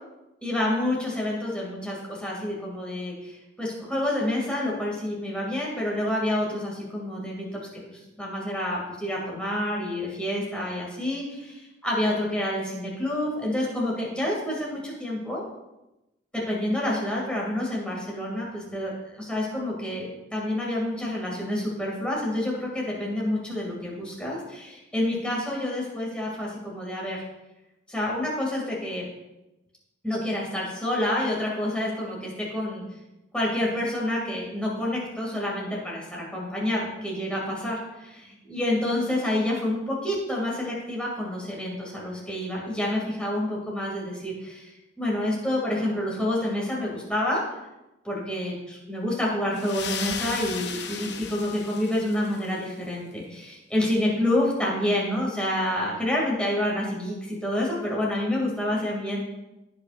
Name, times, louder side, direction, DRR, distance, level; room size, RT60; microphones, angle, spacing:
voice 1, 0.4-7.5 7.9-11.6 11.8-15.4 16.3-27.2 27.9-29.0 30.0-32.8 33.3-44.7 45.0-47.4 48.0-59.2, left 1 dB, 5° left, -4 dB, 2.6 m, -28 dB
sound 1, 49.5-52.6, left 7 dB, 65° left, 0.7 m, -35 dB
16.5 x 5.5 x 2.6 m, 0.97 s
head